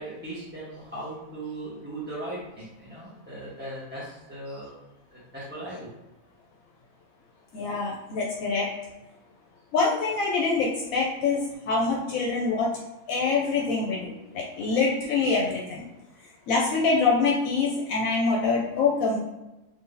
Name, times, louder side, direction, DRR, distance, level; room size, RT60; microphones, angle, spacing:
voice 1, 0.0-4.7 5.1-5.9, right 1 dB, 10° right, -10 dB, 0.8 m, -38 dB
voice 2, 7.5-8.7 9.7-12.7 13.1-15.8 16.5-19.2, left 4 dB, 75° left, -3 dB, 1.0 m, -25 dB
3.2 x 2.7 x 3.8 m, 1.0 s
omnidirectional pair, 1.5 m